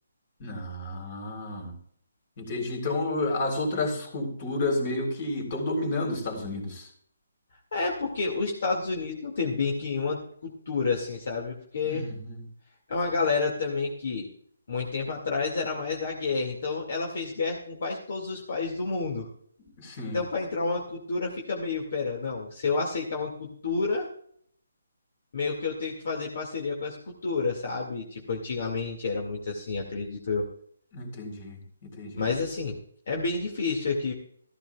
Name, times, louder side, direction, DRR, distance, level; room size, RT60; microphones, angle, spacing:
voice 1, 0.4-1.7 2.4-6.9 11.8-12.4 19.6-20.2 30.9-32.3, left 2 dB, 35° left, 3 dB, 4.0 m, -31 dB
voice 2, 7.7-12.1 12.9-14.3 14.7-19.3 20.1-24.1 25.3-30.5 32.2-32.8 33.1-34.1, left 4 dB, 55° left, 1 dB, 2.2 m, -30 dB
14.5 x 14.0 x 2.4 m, 0.63 s
hypercardioid pair, 155°, 0 cm